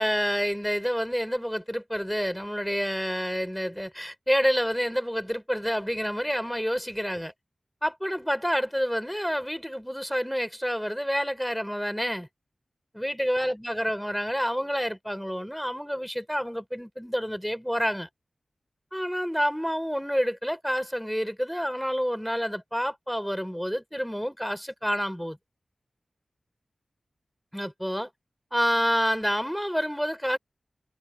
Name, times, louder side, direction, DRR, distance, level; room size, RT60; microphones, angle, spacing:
voice 1, 0.0-7.3 7.8-12.3 12.9-18.1 18.9-25.4 27.5-28.1 28.5-30.4, equal, ahead, 5.3 m, -28 dB
cardioid pair, 40°, 0 cm